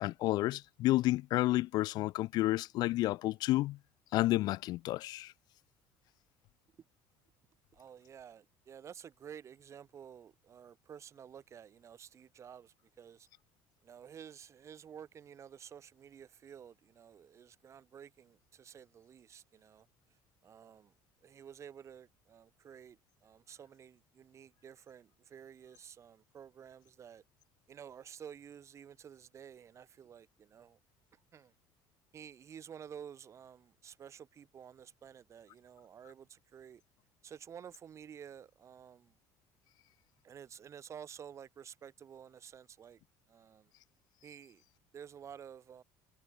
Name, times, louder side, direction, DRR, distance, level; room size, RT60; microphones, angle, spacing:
voice 1, 0.0-3.8 4.1-5.3, left 17 dB, 65° left, 0.8 m, -30 dB
voice 2, 7.7-13.3 13.8-19.9 20.4-20.9 21.2-27.2 27.7-30.8 31.3-31.5 32.1-36.8 37.2-39.1 40.2-43.0 43.3-43.7 44.2-44.6 44.9-45.8, right 8 dB, 40° right, 6.0 m, -52 dB
supercardioid pair, 105°, 7 cm